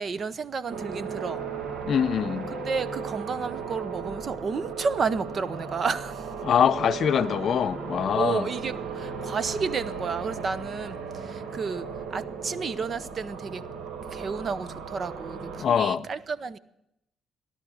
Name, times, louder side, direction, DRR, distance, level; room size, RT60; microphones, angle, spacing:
voice 1, 0.0-1.4 2.6-6.3 8.1-13.6 14.1-16.6, right 5 dB, 45° right, 0.7 m, -31 dB
sound 1, 0.7-15.6, right 5 dB, 75° right, 2.0 m, -36 dB
voice 2, 1.9-2.5 6.4-8.5 15.6-16.0, left 8 dB, 60° left, 0.6 m, -24 dB
16.5 x 11.5 x 6.4 m
cardioid pair, 90°, 0 cm